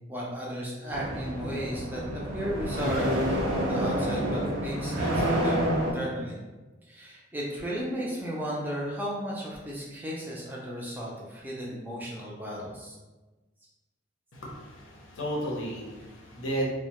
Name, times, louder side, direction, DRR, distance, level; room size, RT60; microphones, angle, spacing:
voice 1, 0.1-3.2 3.5-6.4 6.9-13.0, equal, 10° right, -4 dB, 0.3 m, -34 dB
sound 1, 0.9-5.9, equal, 85° right, 0.5 m, -28 dB
voice 2, 14.3-16.7, right 1 dB, 85° left, -3 dB, 0.6 m, -33 dB
2.1 x 2.0 x 2.8 m, 1.2 s
head